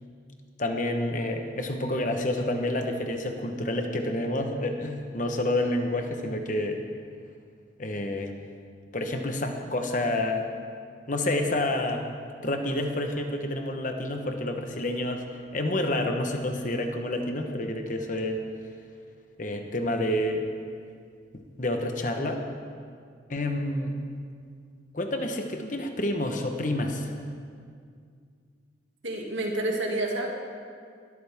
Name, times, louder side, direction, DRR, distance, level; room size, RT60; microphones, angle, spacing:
voice 1, 0.6-6.8 7.8-8.4 8.9-10.5 11.1-12.0 12.4-15.2 15.5-18.4 19.4-20.5 21.3-22.4 23.3-24.0 24.9-27.1, left 1 dB, 40° left, 4 dB, 1.1 m, -29 dB
voice 2, 29.0-30.3, right 2 dB, 80° right, 0 dB, 2.4 m, -29 dB
20.5 x 13.0 x 3.6 m, 2.2 s
head